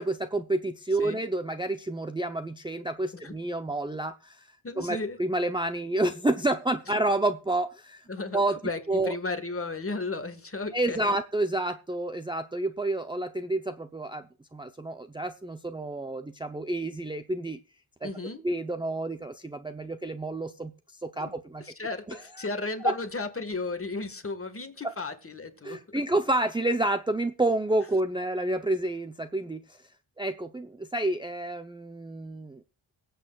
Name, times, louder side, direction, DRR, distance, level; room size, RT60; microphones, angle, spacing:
voice 1, 0.0-4.5 4.8-8.0 8.3-8.6 8.9-9.1 10.7-14.2 14.5-17.6 18.0-18.1 18.4-20.7 21.0-21.6 22.1-22.2 22.8-22.9 25.6-29.8 30.2-32.6, right 2 dB, 10° right, 7 dB, 0.6 m, -29 dB
voice 2, 4.6-5.2 8.1-11.1 18.0-18.4 21.2-21.3 21.6-26.0, left 3 dB, 25° left, 8 dB, 1.6 m, -34 dB
22.5 x 8.0 x 2.4 m, 0.34 s
cardioid pair, 85°, 49 cm